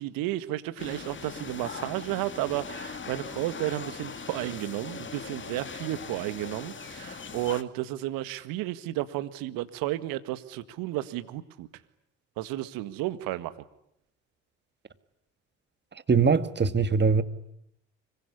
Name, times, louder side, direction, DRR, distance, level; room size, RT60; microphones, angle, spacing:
voice 1, 0.0-11.7 12.4-13.5, right 15 dB, 70° right, 1.8 m, -32 dB
sound 1, 0.8-7.6, left 5 dB, 30° left, 2.4 m, -40 dB
voice 2, 16.1-17.2, right 5 dB, 30° right, 2.1 m, -22 dB
25.0 x 23.0 x 9.9 m
hypercardioid pair, 60°, 36 cm